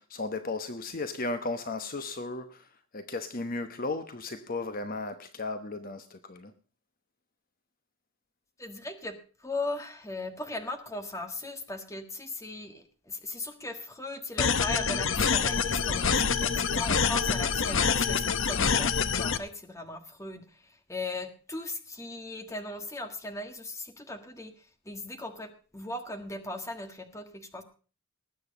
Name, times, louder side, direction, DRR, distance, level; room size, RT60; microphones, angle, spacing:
voice 1, 0.0-6.5, left 3 dB, 45° left, 1.0 m, -35 dB
voice 2, 8.6-9.1 9.4-27.6, left 2 dB, 15° left, 1.6 m, -38 dB
sound 1, 14.4-19.4, left 6 dB, 65° left, 0.8 m, -26 dB
19.5 x 8.0 x 5.1 m
head